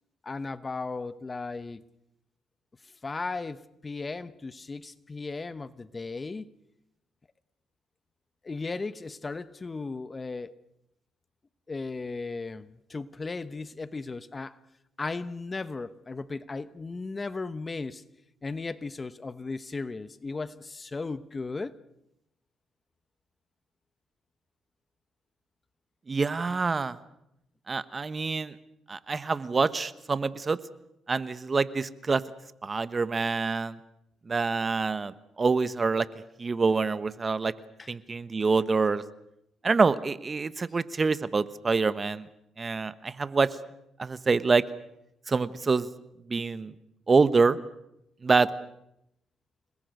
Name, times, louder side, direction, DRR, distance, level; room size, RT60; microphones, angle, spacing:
voice 1, 0.2-1.8 2.8-6.5 8.4-10.5 11.7-14.6 15.0-18.0 18.4-21.8 37.8-37.9, left 3 dB, 30° left, 1.0 m, -36 dB
voice 2, 26.1-27.0 27.7-28.5 28.9-30.6 31.1-32.2 32.6-33.8 34.3-36.1 36.4-37.5 37.9-39.0 39.6-42.3 42.6-43.5 44.0-44.6 45.3-45.9 46.3-46.7 47.1-47.6 48.2-48.5, right 4 dB, 30° right, 1.1 m, -26 dB
29.5 x 20.5 x 6.6 m
cardioid pair, 85°, 0 cm